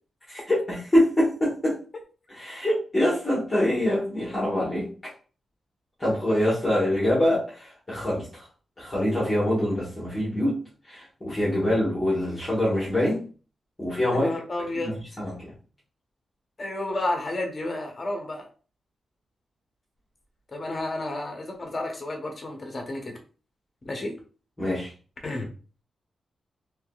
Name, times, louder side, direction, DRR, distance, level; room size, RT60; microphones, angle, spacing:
voice 1, 0.3-1.8 2.3-4.9 6.0-8.5 8.8-10.6 10.9-13.2 13.8-14.3 14.7-15.5 24.6-24.9, left 1 dB, 15° left, -7 dB, 1.2 m, -25 dB
voice 2, 14.1-14.9 16.6-18.5 20.5-23.2 23.8-24.1 25.2-25.5, left 2 dB, 30° left, 2 dB, 0.8 m, -31 dB
3.5 x 3.0 x 2.3 m, 0.38 s
wide cardioid pair, 155°, 0 cm